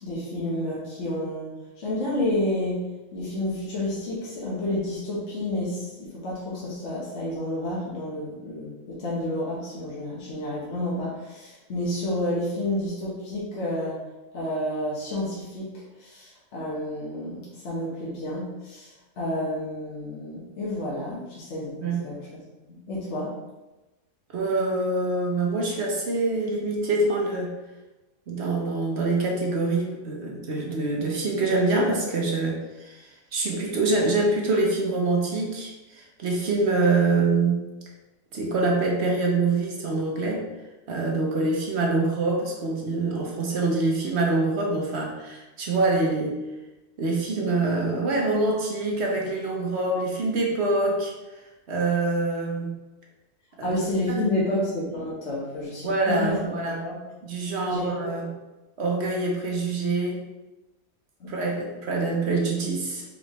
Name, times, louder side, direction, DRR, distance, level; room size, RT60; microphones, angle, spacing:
voice 1, 0.0-14.0 14.3-22.2 22.6-23.4 53.6-57.0 57.7-58.0 61.2-61.3, left 1 dB, 55° left, -7 dB, 1.5 m, -30 dB
voice 2, 24.3-27.5 28.3-32.6 32.8-37.6 38.3-40.4 40.9-46.3 47.0-51.1 51.7-52.7 53.6-53.8 55.8-56.8 57.2-58.3 58.8-60.2 61.3-63.0, right 3 dB, 50° right, -1 dB, 1.1 m, -25 dB
4.6 x 3.7 x 3.1 m, 1.1 s
omnidirectional pair, 1.5 m